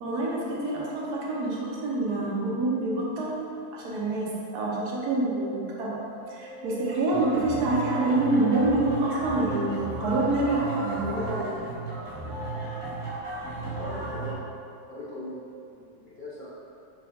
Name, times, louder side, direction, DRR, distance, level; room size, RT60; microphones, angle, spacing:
voice 1, 0.0-3.4 3.7-6.0 6.3-11.6, right 2 dB, 70° right, -5 dB, 1.3 m, -27 dB
sound 1, 5.1-15.3, right 3 dB, 35° right, 0.4 m, -43 dB
sound 2, 7.1-14.3, right 2 dB, 20° right, 0.8 m, -35 dB
voice 2, 13.6-14.5 14.9-15.4 15.6-16.5, left 1 dB, 60° left, -9 dB, 0.5 m, -40 dB
5.6 x 3.2 x 2.8 m, 2.6 s
omnidirectional pair, 1.8 m